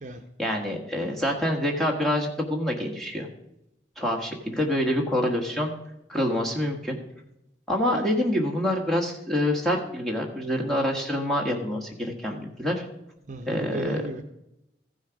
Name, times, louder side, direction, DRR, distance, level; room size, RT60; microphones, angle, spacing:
voice 1, 0.4-3.3 4.0-5.7 6.1-7.0 7.7-12.8 13.5-14.0, left 1 dB, ahead, -1 dB, 1.5 m, -26 dB
voice 2, 13.3-14.2, right 2 dB, 40° right, 6 dB, 0.7 m, -34 dB
14.5 x 6.4 x 5.1 m, 0.85 s
head